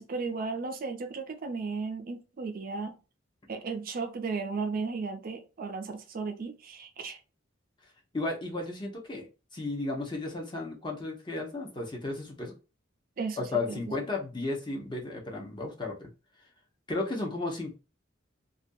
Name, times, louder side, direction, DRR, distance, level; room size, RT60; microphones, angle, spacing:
voice 1, 0.0-3.0 3.5-7.2 13.2-13.8, right 4 dB, 45° right, 0.4 m, -35 dB
voice 2, 8.1-12.5 13.4-16.1 16.9-17.8, left 2 dB, 25° left, 0.6 m, -34 dB
2.5 x 2.2 x 2.6 m
head